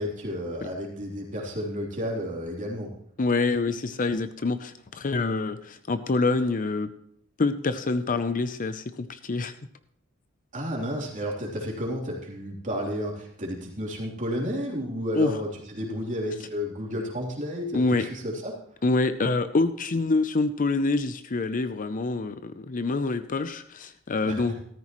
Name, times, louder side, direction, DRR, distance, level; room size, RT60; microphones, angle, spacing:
voice 1, 0.0-2.9 10.5-18.6 24.2-24.5, equal, 35° right, -2 dB, 3.1 m, -32 dB
voice 2, 3.2-6.9 7.4-9.5 15.1-15.3 17.7-18.1 18.8-24.7, left 3 dB, 40° left, 11 dB, 0.6 m, -26 dB
13.5 x 13.5 x 3.1 m, 0.69 s
head